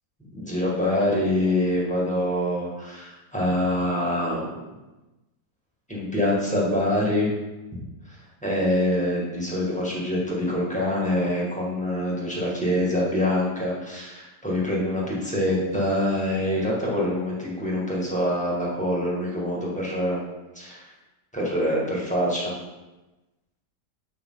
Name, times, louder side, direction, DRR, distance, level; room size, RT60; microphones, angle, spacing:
voice 1, 0.3-4.7 5.9-7.3 7.7-7.8 8.1-20.2 20.5-20.9 21.3-22.5, left 1 dB, 5° left, -5 dB, 1.8 m, -25 dB
8.1 x 5.5 x 3.9 m, 1.1 s
omnidirectional pair, 1.8 m